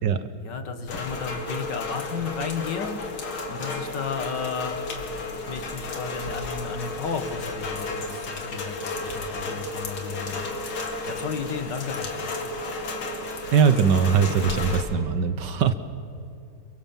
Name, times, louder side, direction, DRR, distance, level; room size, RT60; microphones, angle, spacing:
voice 1, 0.4-3.0 3.5-4.8 5.5-10.5 11.1-12.3, left 5 dB, 60° left, 7 dB, 2.3 m, -33 dB
Rain, 0.9-14.8, left 2 dB, 85° left, 3.1 m, -33 dB
voice 2, 13.5-15.8, right 6 dB, 65° right, 12 dB, 1.5 m, -21 dB
28.5 x 23.0 x 7.3 m, 2.7 s
omnidirectional pair, 2.2 m